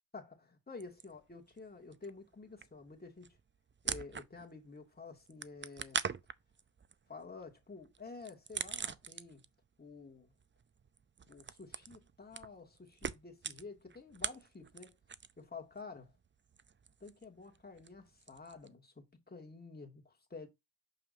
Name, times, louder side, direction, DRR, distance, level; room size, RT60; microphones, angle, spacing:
voice 1, 0.1-3.4 3.8-6.0 7.1-9.4 9.8-10.3 11.3-14.9 15.4-16.1 17.0-20.5, left 4 dB, 20° left, 2.4 m, -50 dB
sound 1, 0.8-1.7 1.9-4.7 4.9-9.6 9.9-15.5 15.7-18.7, right 6 dB, 25° right, 0.6 m, -43 dB
7.1 x 5.5 x 2.7 m
supercardioid pair, 60°, 44 cm